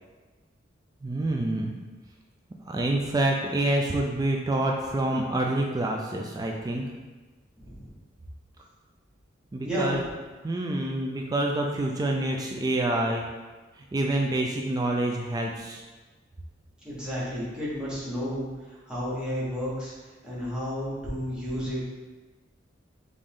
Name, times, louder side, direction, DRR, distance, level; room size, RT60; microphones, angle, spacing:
voice 1, 1.0-1.7 2.7-6.9 9.5-10.0 10.4-13.3 13.8-15.8, right 1 dB, 20° right, 1 dB, 0.3 m, -27 dB
voice 2, 7.6-7.9 9.6-9.9 16.8-18.5 18.9-19.9 20.2-21.8, equal, 5° right, -9 dB, 1.3 m, -31 dB
5.1 x 2.7 x 3.5 m, 1.3 s
head